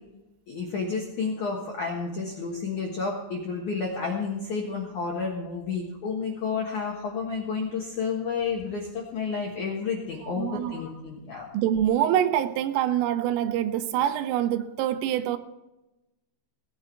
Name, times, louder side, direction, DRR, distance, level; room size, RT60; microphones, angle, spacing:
voice 1, 0.5-11.5, left 5 dB, 70° left, 1.8 m, -31 dB
voice 2, 10.3-10.7 11.5-15.4, right 11 dB, 85° right, 3.3 m, -25 dB
18.0 x 9.2 x 4.5 m
omnidirectional pair, 5.8 m